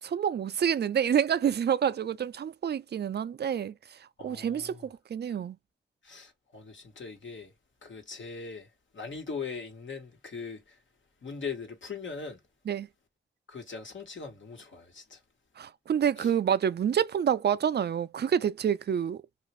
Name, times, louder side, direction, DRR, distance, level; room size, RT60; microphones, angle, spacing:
voice 1, 0.0-5.6 12.7-12.9 15.6-19.2, right 8 dB, 55° right, 0.4 m, -28 dB
voice 2, 4.2-4.8 6.0-7.5 7.8-8.7 8.9-10.8 11.2-12.4 13.5-15.2 16.2-16.3, left 5 dB, 70° left, 1.2 m, -40 dB
2.9 x 2.5 x 3.0 m
cardioid pair, 40°, 20 cm